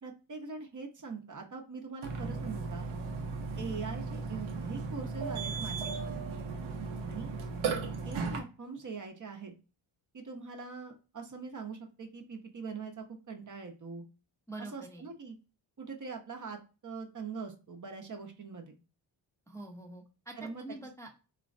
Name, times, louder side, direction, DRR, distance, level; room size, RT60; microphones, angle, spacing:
voice 1, 0.0-2.9 3.6-6.3 7.1-7.3 7.7-9.5 10.1-14.0 14.7-15.4 15.8-18.7 20.4-20.6, right 5 dB, 40° right, 3 dB, 0.7 m, -43 dB
Burping eructation, 2.0-8.4, right 4 dB, 80° right, 0.7 m, -36 dB
voice 2, 14.5-15.1 19.5-21.1, right 2 dB, 5° left, 0 dB, 0.5 m, -45 dB
3.2 x 2.1 x 2.5 m, 0.32 s
cardioid pair, 55°, 47 cm